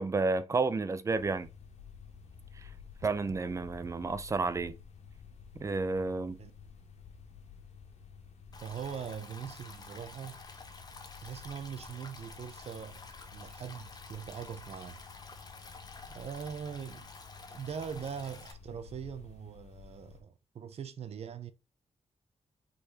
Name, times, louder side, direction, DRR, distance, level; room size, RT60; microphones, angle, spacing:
voice 1, 0.0-1.5 3.0-4.8 5.6-6.4, right 3 dB, 25° right, 0.5 m, -31 dB
sound 1, 1.1-20.2, left 6 dB, 75° left, 1.8 m, -52 dB
Stream, 8.5-18.5, left 3 dB, 35° left, 1.0 m, -50 dB
voice 2, 8.6-10.4 11.2-13.0 13.3-15.0 16.1-17.1 17.5-21.5, right 7 dB, 60° right, 0.7 m, -41 dB
5.8 x 4.0 x 4.1 m
wide cardioid pair, 175°, 12 cm